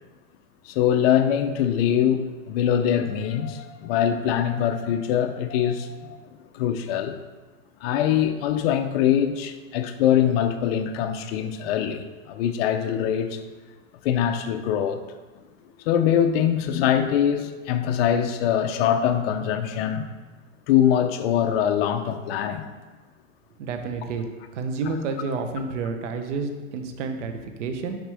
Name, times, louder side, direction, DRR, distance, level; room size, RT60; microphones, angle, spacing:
voice 1, 0.6-6.2 6.5-7.2 7.8-13.4 14.0-15.0 15.9-20.1 20.7-22.7, left 9 dB, 50° left, 0.6 m, -23 dB
voice 2, 23.6-24.3 24.5-28.0, right 4 dB, 70° right, 0.9 m, -30 dB
6.3 x 5.1 x 3.4 m
supercardioid pair, 145°, 38 cm